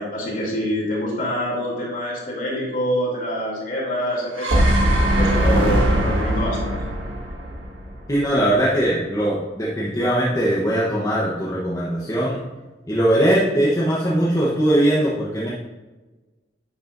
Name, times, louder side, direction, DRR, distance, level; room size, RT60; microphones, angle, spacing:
voice 1, 0.0-4.7 5.2-6.8, equal, 45° left, -3 dB, 2.9 m, -25 dB
sound 1, 4.1-8.3, right 1 dB, 85° right, 1.7 m, -20 dB
voice 2, 8.1-12.4 12.9-15.5, right 1 dB, 15° left, -6 dB, 0.9 m, -20 dB
10.5 x 8.6 x 2.6 m, 1.2 s
head